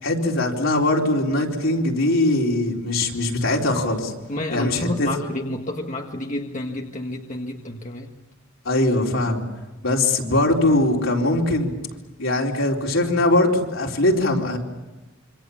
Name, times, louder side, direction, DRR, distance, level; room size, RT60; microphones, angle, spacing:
voice 1, 0.0-4.1 4.5-5.1 8.6-9.4 9.8-11.7 12.2-14.6, left 2 dB, 70° left, -1 dB, 4.1 m, -21 dB
voice 2, 4.3-8.1, left 1 dB, 35° left, 1 dB, 1.6 m, -29 dB
26.5 x 26.0 x 7.2 m, 1.1 s
head